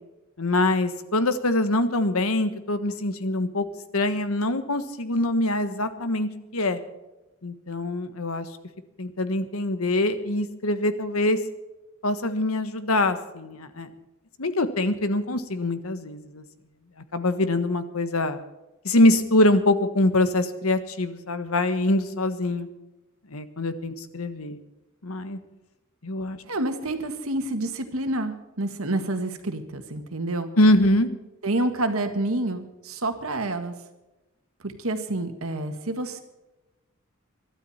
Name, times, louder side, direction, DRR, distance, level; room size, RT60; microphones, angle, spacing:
voice 1, 0.4-3.7 3.9-6.8 7.4-8.4 9.0-11.4 12.0-13.9 14.4-16.4 17.1-18.4 18.8-22.7 23.3-24.6 25.0-25.4 26.0-26.4 30.6-31.1, left 1 dB, 80° left, 10 dB, 1.4 m, -24 dB
voice 2, 26.4-30.5 31.4-33.7 34.6-36.2, right 2 dB, 75° right, 7 dB, 1.8 m, -28 dB
23.0 x 12.0 x 4.3 m, 1.0 s
head